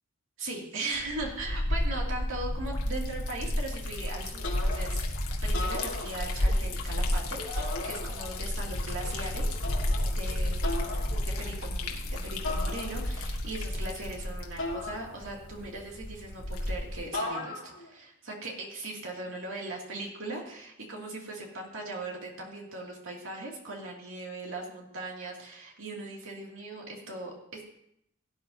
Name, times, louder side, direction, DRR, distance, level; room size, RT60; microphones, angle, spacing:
voice 1, 0.4-5.0 5.4-9.6 10.2-11.1 11.4-27.6, right 2 dB, 65° right, -1 dB, 2.6 m, -39 dB
Liquid, 0.9-17.0, left 1 dB, 85° left, 1.6 m, -32 dB
sound 1, 4.4-5.1 5.4-6.6 7.6-8.5 9.6-10.1 10.6-11.1 12.4-13.3 14.6-15.6 17.1-17.9, left 2 dB, 65° left, 2.8 m, -37 dB
sound 2, 6.1-13.3, equal, 50° right, 4.2 m, -48 dB
17.0 x 9.8 x 2.8 m, 0.76 s
head